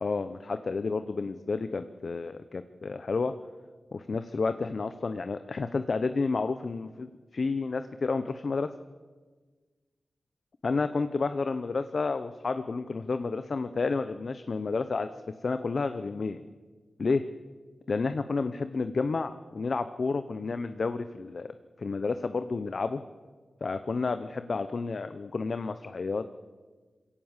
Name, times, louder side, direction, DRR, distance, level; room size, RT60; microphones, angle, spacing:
voice 1, 0.0-3.3 3.9-8.7 10.6-15.1 15.4-16.4 17.0-17.2 17.9-21.5 21.8-23.0 23.6-26.2, left 4 dB, 65° left, 10 dB, 0.8 m, -30 dB
22.0 x 17.0 x 7.4 m, 1.4 s
cardioid pair, 50°, 0 cm